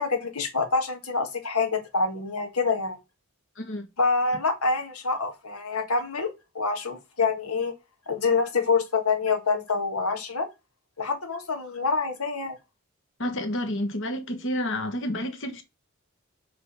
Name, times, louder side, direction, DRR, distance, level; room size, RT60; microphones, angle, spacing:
voice 1, 0.0-3.0 4.0-7.7 8.1-10.5 11.0-12.6, left 4 dB, 85° left, 1.6 m, -26 dB
voice 2, 3.6-3.9 13.2-15.6, left 1 dB, 60° left, 1.3 m, -30 dB
6.6 x 3.5 x 5.5 m
head